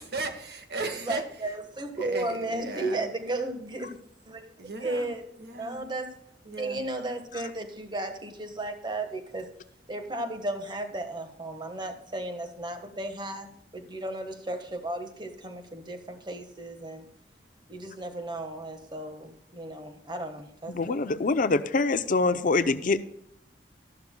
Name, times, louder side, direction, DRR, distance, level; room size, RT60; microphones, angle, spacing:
voice 1, 0.0-1.5 1.9-3.1 4.6-5.8 6.4-6.8, right 3 dB, 65° right, 5 dB, 1.5 m, -36 dB
voice 2, 1.1-4.0 4.2-4.5 4.8-5.2 5.6-6.1 6.6-9.5 9.9-17.0 17.7-21.1, right 2 dB, 25° right, 6 dB, 1.4 m, -34 dB
voice 3, 20.7-23.0, left 3 dB, 50° left, 12 dB, 0.5 m, -24 dB
13.0 x 11.5 x 2.2 m, 0.73 s
head